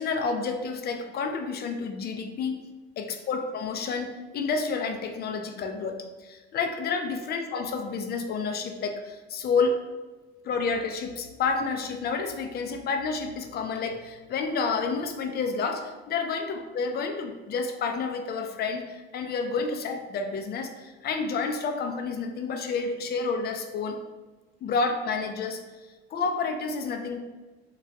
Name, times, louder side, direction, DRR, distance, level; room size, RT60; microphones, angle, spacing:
voice 1, 0.0-2.6 3.0-9.8 10.4-24.0 24.6-25.6 26.1-27.2, left 4 dB, 30° left, 5 dB, 0.4 m, -29 dB
3.2 x 2.2 x 2.6 m, 1.2 s
hypercardioid pair, 65°, 32 cm